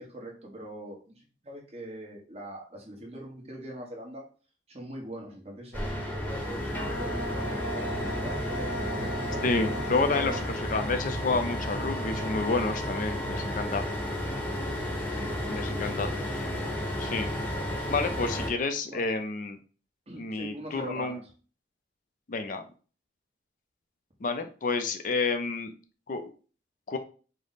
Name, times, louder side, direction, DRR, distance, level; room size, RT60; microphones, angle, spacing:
voice 1, 0.0-4.2 4.7-9.5 9.9-10.5 18.0-18.5 18.9-19.1 20.1-21.2, equal, 35° right, -1 dB, 1.1 m, -42 dB
sound 1, 5.7-18.5, left 1 dB, 10° left, 0.9 m, -32 dB
Bowed string instrument, 6.6-10.9, right 1 dB, 85° left, 0.7 m, -37 dB
voice 2, 9.4-13.8 15.5-16.1 17.0-17.3 17.9-19.6 20.2-21.2 22.3-22.7 24.2-25.7 26.1-26.3 26.9-27.0, left 3 dB, 45° left, 7 dB, 0.4 m, -29 dB
5.0 x 2.1 x 4.0 m, 0.37 s
head